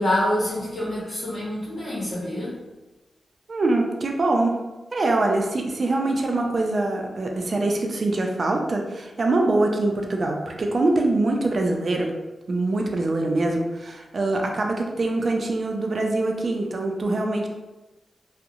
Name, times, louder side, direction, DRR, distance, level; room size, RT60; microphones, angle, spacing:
voice 1, 0.0-2.5, left 1 dB, 85° left, -10 dB, 0.8 m, -26 dB
voice 2, 3.5-4.6 4.9-12.1 12.5-17.5, right 2 dB, 55° right, 2 dB, 0.4 m, -24 dB
2.8 x 2.0 x 2.4 m, 1.1 s
cardioid pair, 80°, 0 cm